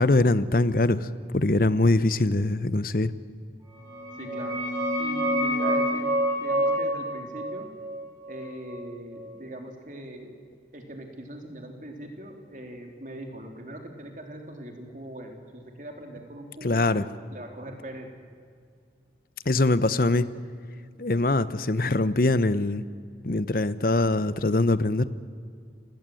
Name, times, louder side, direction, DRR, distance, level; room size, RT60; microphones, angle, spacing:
voice 1, 0.0-3.1 16.6-17.0 19.5-20.3 21.0-22.8 23.2-25.1, left 2 dB, 55° left, 15 dB, 0.8 m, -23 dB
sound 1, 3.8-9.2, equal, 20° right, 7.0 m, -28 dB
voice 2, 4.2-4.6 5.0-7.7 8.3-10.3 10.7-18.1, right 1 dB, 45° right, 3 dB, 3.4 m, -41 dB
29.5 x 17.5 x 7.8 m, 2.2 s
head